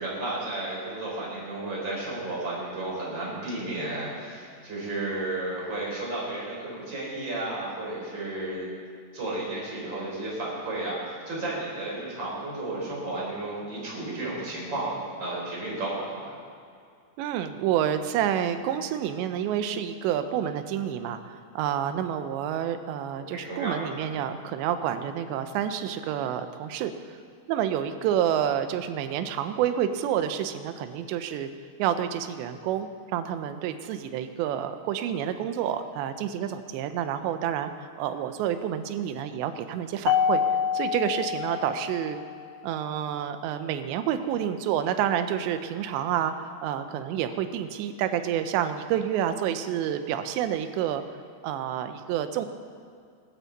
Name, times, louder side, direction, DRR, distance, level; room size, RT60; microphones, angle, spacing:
voice 1, 0.0-8.6 9.1-16.3 23.3-23.9, right 2 dB, 25° right, -5 dB, 4.6 m, -33 dB
voice 2, 17.2-26.9 27.5-31.5 31.8-40.4 40.7-42.2 42.6-51.0 51.4-52.5, right 10 dB, 85° right, 9 dB, 2.9 m, -29 dB
Mallet percussion, 40.1-42.5, left 7 dB, 85° left, 2.8 m, -27 dB
20.0 x 13.0 x 4.1 m, 2.3 s
omnidirectional pair, 5.1 m